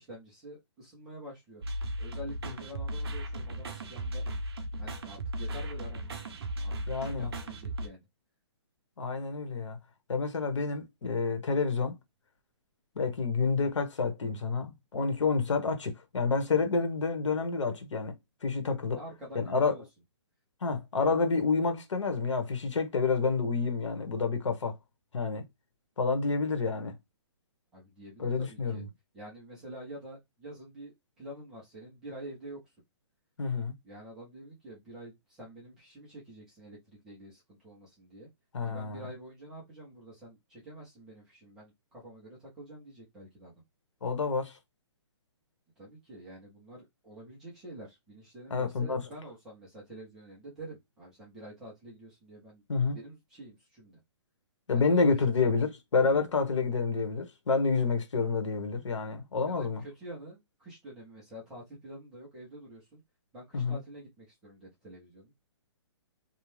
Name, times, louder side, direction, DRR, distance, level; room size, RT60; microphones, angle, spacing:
voice 1, 0.0-1.6 2.0-4.2 4.8-6.1 6.6-6.7 7.0-8.1 18.9-19.8 27.7-28.8 29.1-32.6 33.8-38.3 38.6-43.5 45.8-52.6 52.9-54.0 54.7-55.1 56.0-56.2 59.4-63.0 63.3-65.5, right 1 dB, 5° right, 0.3 m, -47 dB
sound 1, 1.6-7.9, right 1 dB, 55° right, 0.6 m, -36 dB
voice 2, 6.9-7.3 9.0-9.8 10.1-12.0 13.0-18.1 18.4-19.0 19.3-19.7 20.6-24.8 25.1-25.5 26.0-26.9 28.2-28.8 33.4-33.7 38.5-39.1 44.0-44.6 48.5-49.0 52.7-53.0 54.7-59.8 63.5-63.8, left 4 dB, 90° left, 1.0 m, -29 dB
2.7 x 2.0 x 3.0 m
hypercardioid pair, 175°, 15 cm